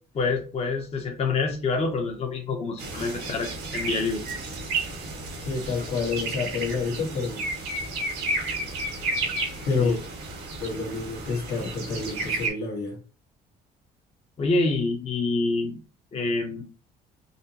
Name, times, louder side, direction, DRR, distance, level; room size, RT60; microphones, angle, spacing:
voice 1, 0.1-4.2 9.8-9.9 14.4-15.8 16.1-16.6, left 3 dB, 35° left, 0.8 m, -27 dB
sound 1, 2.8-12.5, right 2 dB, 90° right, 1.8 m, -32 dB
voice 2, 5.4-7.5 9.6-10.0 10.6-13.0, left 4 dB, 70° left, 1.3 m, -28 dB
4.1 x 2.9 x 2.8 m
cardioid pair, 110°, 17 cm